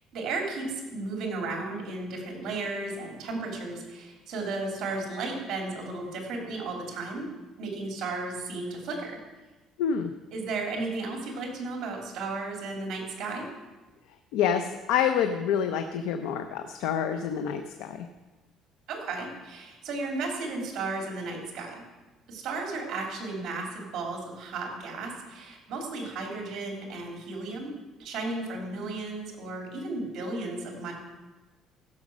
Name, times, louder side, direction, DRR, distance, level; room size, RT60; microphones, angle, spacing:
voice 1, 0.1-7.3 7.6-9.2 10.3-13.5 18.9-21.8 22.3-27.7 28.0-30.9, right 3 dB, 50° right, 1 dB, 3.3 m, -34 dB
voice 2, 9.8-10.1 14.3-18.1, left 8 dB, 90° left, 7 dB, 0.7 m, -27 dB
15.5 x 6.4 x 6.2 m, 1.2 s
cardioid pair, 145°, 0 cm